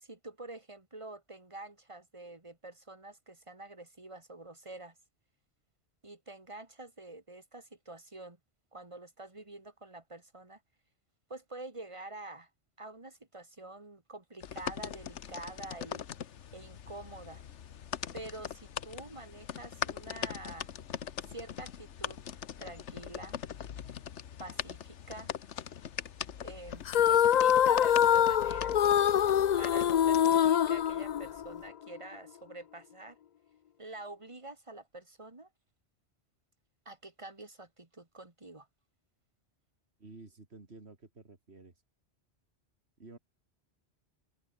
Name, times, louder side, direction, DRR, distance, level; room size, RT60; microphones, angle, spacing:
voice 1, 0.0-4.9 6.0-8.4 8.7-10.6 11.3-12.5 12.8-16.1 16.5-17.4 18.1-20.7 21.3-22.2 22.6-23.4 24.4-25.3 26.4-28.8 29.6-33.2 33.8-35.5 36.9-38.7, right 2 dB, 25° right, 2.4 m, -47 dB
sound 1, 14.4-30.5, left 8 dB, 90° left, 1.3 m, -41 dB
sound 2, 26.9-31.7, left 9 dB, 55° left, 0.5 m, -25 dB
voice 2, 40.0-41.7 43.0-43.2, right 3 dB, 65° right, 3.0 m, -51 dB
open air
omnidirectional pair, 1.2 m